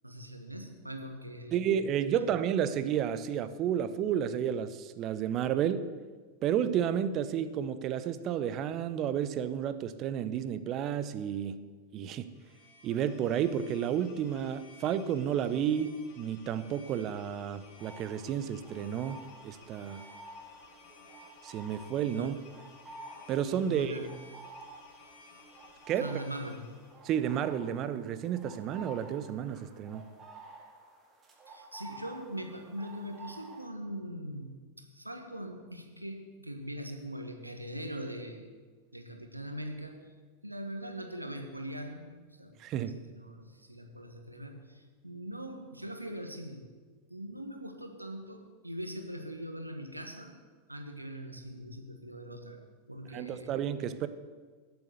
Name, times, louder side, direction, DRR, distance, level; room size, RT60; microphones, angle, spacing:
voice 1, 0.0-1.8 2.1-2.3 22.2-22.3 23.6-24.1 26.0-26.7 31.5-38.5 38.9-40.1 40.4-42.5 43.1-46.7 47.1-50.4 50.7-52.6 52.9-53.7, equal, 85° right, 5 dB, 1.3 m, -41 dB
voice 2, 1.5-5.9 6.4-11.6 11.9-12.3 12.8-20.0 21.4-22.3 23.3-24.0 25.9-26.1 27.0-30.1 42.6-43.0 53.1-54.1, right 9 dB, 35° right, 13 dB, 0.7 m, -31 dB
sound 1, 12.2-27.0, left 3 dB, 40° left, 3.7 m, -56 dB
sound 2, 17.8-33.7, right 2 dB, 20° right, 2.0 m, -51 dB
12.0 x 7.1 x 6.5 m, 1.5 s
figure-of-eight pair, 90°, 0 cm